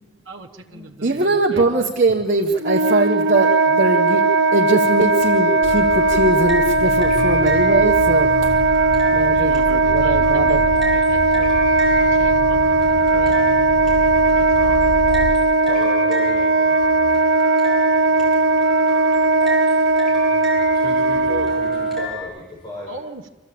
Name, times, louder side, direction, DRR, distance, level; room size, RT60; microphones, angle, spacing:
voice 1, 0.3-1.6 9.1-11.6 12.1-12.7 13.1-13.5 14.3-14.8 22.9-23.3, right 3 dB, 90° right, 1 dB, 1.2 m, -39 dB
voice 2, 1.0-4.2 4.5-8.5 9.1-10.6, right 2 dB, 45° right, 0 dB, 1.4 m, -21 dB
Wind instrument woodwind instrument, 2.6-22.1, right 3 dB, 65° right, 0.8 m, -17 dB
sound 1, 5.0-22.2, equal, ahead, 6.3 m, -35 dB
sound 2, 5.6-15.3, equal, 85° left, 1.0 m, -30 dB
voice 3, 15.7-16.4 20.7-22.9, left 1 dB, 20° left, -5 dB, 5.6 m, -33 dB
26.0 x 14.5 x 8.6 m, 1.1 s
head